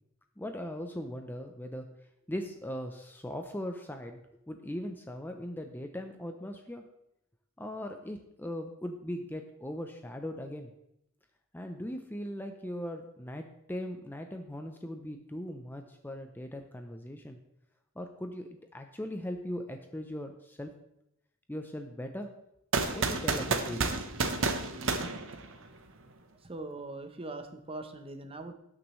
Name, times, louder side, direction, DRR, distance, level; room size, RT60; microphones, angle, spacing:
voice 1, 0.4-1.9 2.3-6.8 7.6-10.7 11.5-17.4 18.0-20.7 21.5-22.3 22.9-24.1, left 1 dB, 10° left, 5 dB, 0.5 m, -39 dB
sound 1, 22.7-25.9, right 3 dB, 60° right, 0.9 m, -30 dB
voice 2, 26.4-28.5, right 2 dB, 25° right, 7 dB, 0.8 m, -41 dB
18.0 x 6.2 x 3.1 m, 0.82 s
head